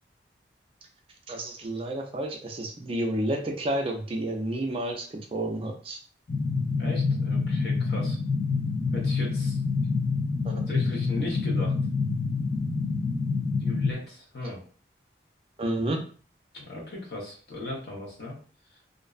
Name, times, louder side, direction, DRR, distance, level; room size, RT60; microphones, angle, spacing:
voice 1, 1.3-6.0 10.4-10.5 15.6-16.0, right 1 dB, 30° right, 3 dB, 0.4 m, -30 dB
sound 1, 6.3-13.9, left 4 dB, 40° left, 0.4 m, -27 dB
voice 2, 6.7-8.2 8.9-9.6 10.5-11.8 13.6-14.6 16.5-18.4, left 1 dB, 60° left, -2 dB, 0.8 m, -37 dB
2.5 x 2.1 x 2.4 m, 0.41 s
head